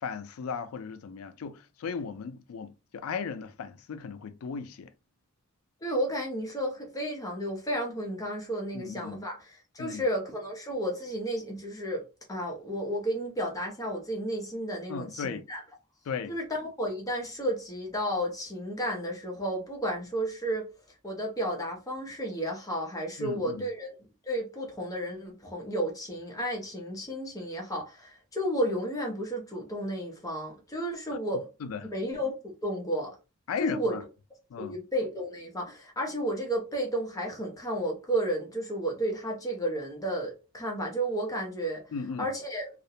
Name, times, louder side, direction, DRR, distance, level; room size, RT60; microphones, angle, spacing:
voice 1, 0.0-4.9 8.7-9.2 9.8-10.0 14.9-15.4 16.1-16.4 23.2-23.6 31.6-31.9 33.5-34.0 34.5-34.7 41.9-42.3, left 6 dB, 80° left, 0.4 m, -36 dB
voice 2, 5.8-12.0 12.3-15.6 16.3-20.7 21.0-23.9 24.2-31.5 31.9-33.1 33.6-34.0 34.6-41.8 42.2-42.7, right 1 dB, 15° left, 0.6 m, -32 dB
2.4 x 2.1 x 2.7 m
head